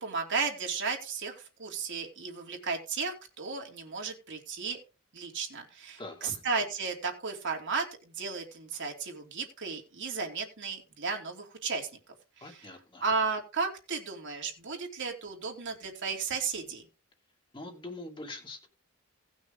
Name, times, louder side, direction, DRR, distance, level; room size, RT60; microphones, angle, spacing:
voice 1, 0.0-4.8 5.1-11.9 12.4-12.7 13.0-16.9, right 4 dB, 60° right, 2.9 m, -34 dB
voice 2, 6.0-6.3 12.4-13.0 17.5-18.7, left 2 dB, 25° left, 2.5 m, -43 dB
18.0 x 6.3 x 3.8 m
head